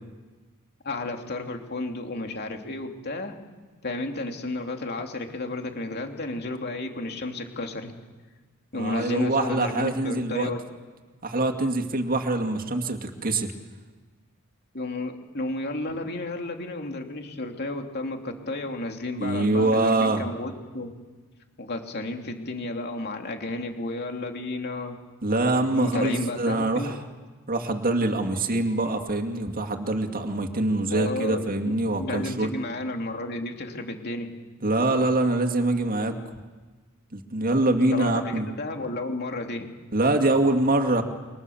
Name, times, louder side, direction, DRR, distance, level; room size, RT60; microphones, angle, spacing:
voice 1, 0.8-3.4 3.8-7.9 8.7-10.6 14.7-20.9 21.6-25.0 25.7-26.9 30.9-31.7 32.0-34.3 37.7-39.7, left 2 dB, 45° left, 3 dB, 3.0 m, -32 dB
voice 2, 8.7-10.5 11.2-13.5 19.2-20.2 25.2-27.0 27.5-32.5 34.6-36.2 37.1-38.5 39.9-41.0, right 2 dB, 40° right, 4 dB, 2.4 m, -24 dB
29.5 x 24.5 x 7.2 m, 1.3 s
head